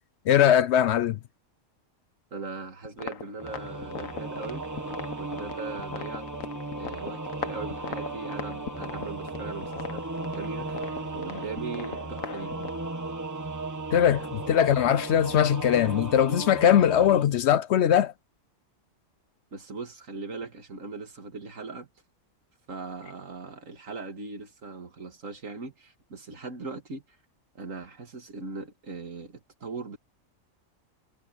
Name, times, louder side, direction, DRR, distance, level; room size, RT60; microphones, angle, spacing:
voice 1, 0.3-1.2 13.9-18.1, left 10 dB, 65° left, 0.8 m, -21 dB
voice 2, 2.3-4.6 5.2-6.3 6.8-10.0 10.3-12.5 19.5-21.9 22.7-27.0 27.5-30.0, right 4 dB, 80° right, 2.6 m, -39 dB
sound 1, 2.8-12.7, left 7 dB, 90° left, 1.6 m, -40 dB
Singing / Musical instrument, 3.4-17.2, right 2 dB, 15° right, 1.4 m, -36 dB
omnidirectional pair, 1.3 m